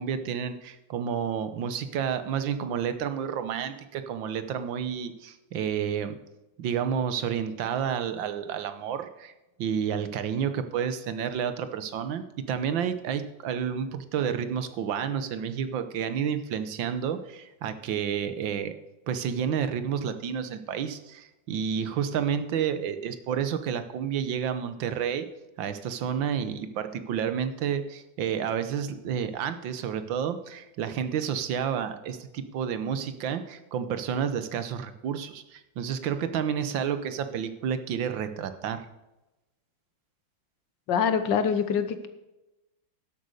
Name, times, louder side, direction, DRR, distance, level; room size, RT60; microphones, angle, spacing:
voice 1, 0.0-6.1 6.6-9.3 9.6-18.8 19.1-25.3 25.6-38.8, right 8 dB, 80° right, 10 dB, 1.7 m, -30 dB
voice 2, 40.9-42.1, left 7 dB, 70° left, 10 dB, 1.7 m, -25 dB
12.0 x 8.2 x 6.5 m, 0.99 s
omnidirectional pair, 2.1 m